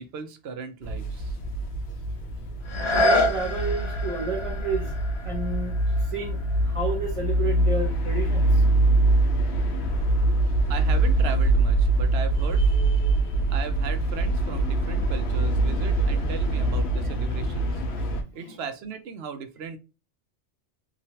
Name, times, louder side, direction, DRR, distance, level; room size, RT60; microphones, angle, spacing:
voice 1, 0.0-1.4 10.7-13.0 13.5-17.8 18.3-19.8, right 5 dB, 70° right, 0.8 m, -37 dB
sound 1, 0.8-18.2, right 2 dB, 75° left, 0.9 m, -24 dB
sound 2, 2.6-8.3 8.9-9.0, left 1 dB, 50° left, 0.3 m, -29 dB
voice 2, 3.0-4.9 5.2-8.6 18.3-18.6, right 3 dB, 30° right, 0.8 m, -31 dB
3.0 x 2.4 x 2.7 m
omnidirectional pair, 1.2 m